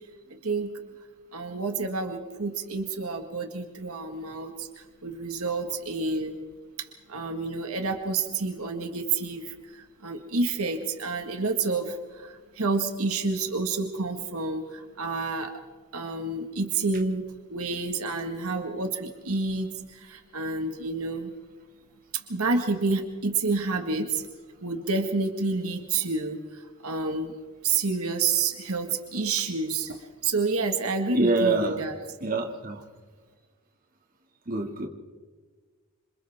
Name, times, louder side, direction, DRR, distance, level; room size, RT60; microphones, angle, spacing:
voice 1, 1.3-6.4 7.1-15.5 15.9-17.2 17.5-21.3 22.3-24.2 24.6-27.4 27.6-31.9, right 3 dB, 75° right, 4 dB, 1.7 m, -29 dB
voice 2, 31.1-31.7 32.2-32.8 34.5-34.9, right 3 dB, 40° right, 2 dB, 2.3 m, -25 dB
27.5 x 27.0 x 3.6 m, 1.4 s
head